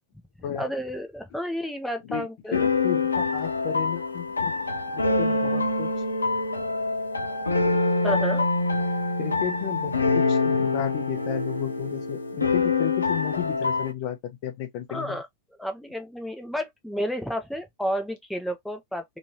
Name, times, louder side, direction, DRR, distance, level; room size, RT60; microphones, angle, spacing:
voice 1, 0.6-2.7 8.0-8.4 14.9-15.3 15.6-19.0, equal, ahead, 0.7 m, -31 dB
sound 1, 2.5-13.9, left 3 dB, 80° left, 0.4 m, -25 dB
voice 2, 2.5-4.5 4.9-5.9 9.2-15.2, left 11 dB, 45° left, 0.9 m, -33 dB
3.0 x 2.7 x 2.8 m
figure-of-eight pair, 90°, 0 cm